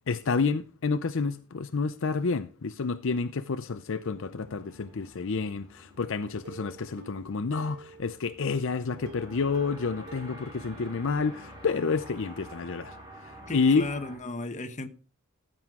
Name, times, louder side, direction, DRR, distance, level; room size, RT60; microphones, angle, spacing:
voice 1, 0.1-13.0 13.2-13.9, left 4 dB, 65° left, 0.6 m, -29 dB
sound 1, 4.1-14.2, equal, 20° right, 4.7 m, -49 dB
Plucked string instrument, 6.4-8.4 9.1-11.8 12.2-12.3 12.6-12.7, right 2 dB, 55° right, 1.2 m, -50 dB
voice 2, 13.4-14.9, left 2 dB, 35° left, 1.1 m, -35 dB
14.0 x 7.7 x 3.7 m
head